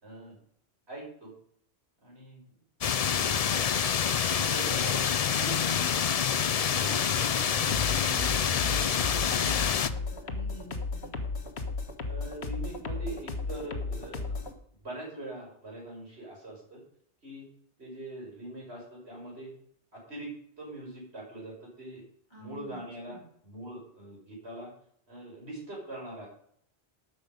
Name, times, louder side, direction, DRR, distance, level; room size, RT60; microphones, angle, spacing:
voice 1, 0.0-0.4 0.9-1.3 2.0-2.5 3.1-3.7 4.3-5.8 6.5-7.6 12.0-14.6 14.8-16.8 17.2-17.5 17.8-19.5 19.9-22.0 22.4-24.7 25.1-26.3, right 2 dB, 80° right, -2 dB, 5.4 m, -42 dB
sound 1, 2.8-9.9, left 7 dB, 45° left, 0.5 m, -27 dB
voice 2, 6.8-11.2 22.3-22.8 23.0-23.3, right 1 dB, 25° left, -3 dB, 5.0 m, -47 dB
sound 2, 7.7-14.5, left 3 dB, 80° left, 1.6 m, -34 dB
12.5 x 8.0 x 5.3 m, 0.66 s
omnidirectional pair, 1.1 m